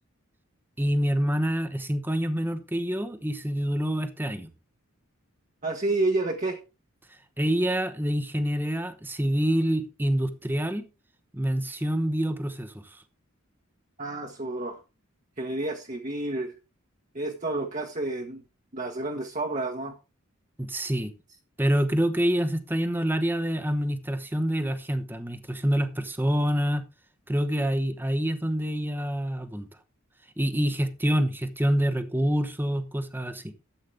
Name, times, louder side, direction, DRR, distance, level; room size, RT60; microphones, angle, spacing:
voice 1, 0.8-4.5 7.4-10.8 11.3-12.9 20.6-21.1 21.6-26.8 27.3-29.7 30.4-33.5, equal, 10° right, 10 dB, 1.0 m, -26 dB
voice 2, 5.6-6.6 14.0-14.8 15.4-16.5 17.1-18.4 18.7-19.9, right 2 dB, 35° right, 2 dB, 1.4 m, -30 dB
13.0 x 8.4 x 3.5 m, 0.29 s
head